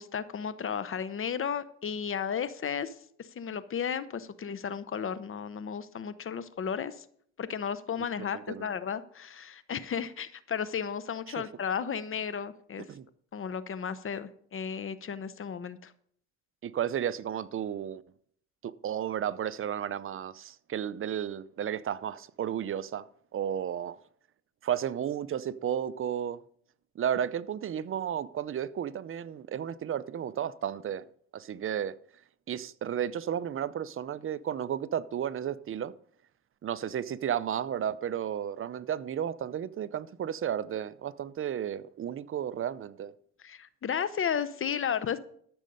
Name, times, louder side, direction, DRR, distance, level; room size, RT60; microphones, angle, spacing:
voice 1, 0.0-7.0 7.4-12.8 13.3-15.9 43.4-45.2, left 7 dB, 45° left, 0.8 m, -34 dB
voice 2, 8.3-8.7 11.3-11.4 12.9-13.0 16.6-18.0 18.6-23.1 23.3-24.0 24.6-26.4 27.0-31.0 31.3-31.9 32.5-35.9 36.6-43.1, right 9 dB, 45° right, 0.6 m, -33 dB
13.5 x 6.3 x 5.3 m
cardioid pair, 90°, 30 cm